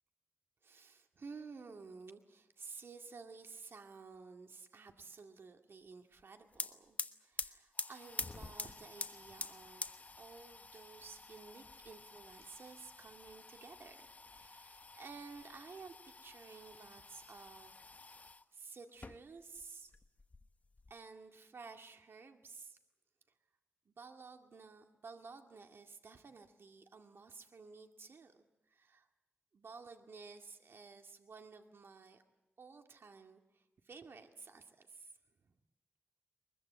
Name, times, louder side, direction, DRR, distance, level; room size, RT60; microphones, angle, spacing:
voice 1, 0.6-9.9 10.2-17.8 18.5-19.9 20.9-22.8 23.9-29.1 29.5-32.2 32.6-35.2 35.4-35.5, right 4 dB, 65° right, 5 dB, 2.1 m, -53 dB
sound 1, 6.2-6.3 6.5-18.4 18.9-19.7 19.9-20.9, left 3 dB, 35° left, 1.1 m, -47 dB
23.0 x 22.0 x 8.4 m, 0.98 s
wide cardioid pair, 85°, 4 cm